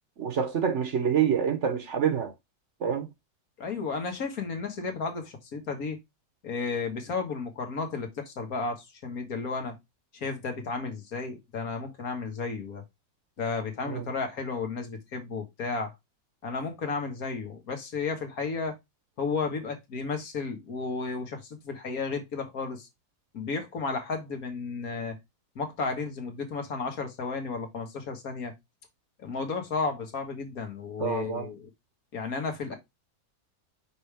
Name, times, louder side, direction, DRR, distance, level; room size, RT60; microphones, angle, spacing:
voice 1, 0.2-2.3 2.8-3.1 13.9-14.1 31.0-31.5, right 7 dB, 55° right, 1.1 m, -27 dB
voice 2, 3.6-6.0 6.4-9.7 10.1-12.8 13.4-15.9 16.4-18.8 19.2-22.9 23.3-25.2 25.6-28.5 29.2-31.7 32.1-32.8, left 4 dB, 70° left, 1.9 m, -33 dB
6.1 x 5.0 x 3.4 m
omnidirectional pair, 1.6 m